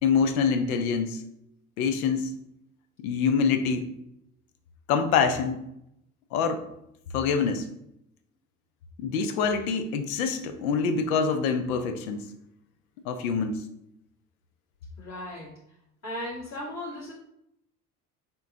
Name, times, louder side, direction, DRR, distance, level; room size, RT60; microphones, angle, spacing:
voice 1, 0.0-1.2 1.8-2.3 3.0-3.9 4.9-5.6 6.3-6.6 7.1-7.6 9.0-12.2 13.0-13.6, left 6 dB, 65° left, 8 dB, 0.7 m, -25 dB
voice 2, 15.0-15.6 16.0-17.1, left 1 dB, 35° left, -7 dB, 1.7 m, -36 dB
4.4 x 3.7 x 2.7 m, 0.78 s
figure-of-eight pair, 60°, 45 cm